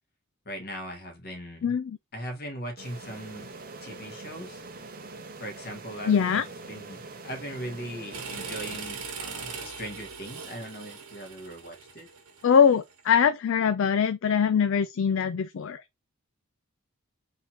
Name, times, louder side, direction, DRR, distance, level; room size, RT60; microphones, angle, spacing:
voice 1, 0.4-1.7 2.1-3.5 3.8-4.6 5.4-12.1, equal, 45° left, 1.5 m, -39 dB
voice 2, 1.6-2.0 6.1-6.4 12.4-15.8, left 7 dB, 60° left, 0.4 m, -22 dB
sound 1, 2.8-9.4, right 3 dB, 40° right, 0.8 m, -44 dB
sound 2, 8.1-13.0, right 5 dB, 85° right, 1.3 m, -40 dB
3.6 x 2.9 x 4.2 m
head